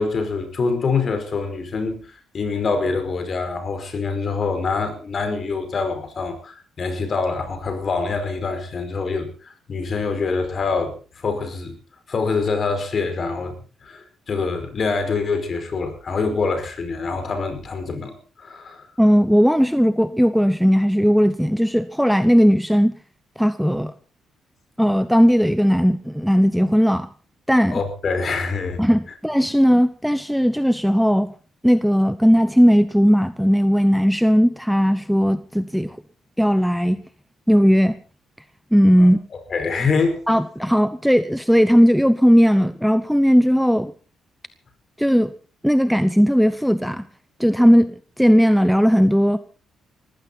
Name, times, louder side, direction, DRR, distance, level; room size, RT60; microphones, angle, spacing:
voice 1, 0.0-11.7 12.1-13.6 13.8-18.8 27.7-28.8 39.0-39.1 39.5-40.2, left 4 dB, 45° left, 5.3 m, -25 dB
voice 2, 19.0-22.9 23.4-23.9 24.8-27.1 27.5-27.8 28.8-31.3 31.6-36.0 36.4-37.0 37.5-38.0 38.7-39.2 40.3-43.9 45.0-45.3 45.6-47.0 47.4-49.4, equal, ahead, 0.9 m, -17 dB
20.0 x 15.5 x 4.2 m
cardioid pair, 90°, 0 cm